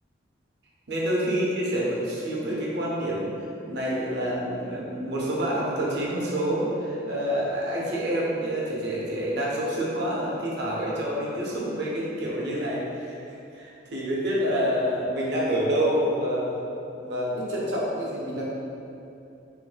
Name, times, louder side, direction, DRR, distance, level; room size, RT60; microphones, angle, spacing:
voice 1, 0.9-3.3 3.7-16.6 17.0-18.5, equal, 60° right, -5 dB, 0.6 m, -27 dB
2.5 x 2.3 x 3.8 m, 2.7 s
head